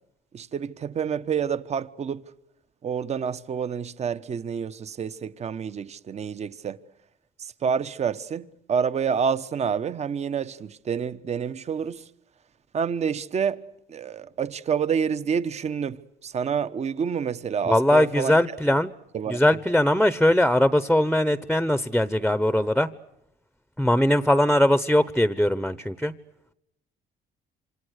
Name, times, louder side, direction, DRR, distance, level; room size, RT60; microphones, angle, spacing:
voice 1, 0.3-2.2 2.8-6.8 7.4-12.0 12.7-13.6 13.9-18.3 18.7-18.8 19.1-19.4, right 7 dB, 40° right, 1.2 m, -28 dB
voice 2, 17.6-18.9 19.3-22.9 23.8-26.1, left 1 dB, ahead, 1.0 m, -21 dB
28.0 x 26.5 x 6.6 m
cardioid pair, 110°, 17 cm